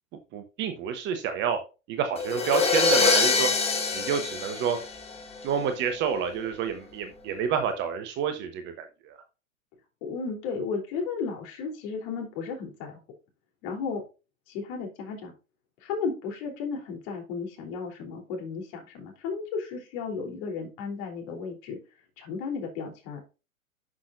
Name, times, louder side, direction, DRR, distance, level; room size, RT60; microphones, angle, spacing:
voice 1, 0.3-1.6 1.9-3.5 3.9-4.8 5.4-9.2, right 7 dB, 25° right, 7 dB, 1.0 m, -29 dB
sound 1, 2.2-5.4, left 4 dB, 15° left, 1.4 m, -24 dB
voice 2, 10.0-13.0 13.6-14.0 14.5-15.3 15.8-21.8 22.2-23.2, left 5 dB, 40° left, 2 dB, 3.3 m, -34 dB
11.5 x 6.1 x 2.5 m, 0.32 s
figure-of-eight pair, 105°, 41 cm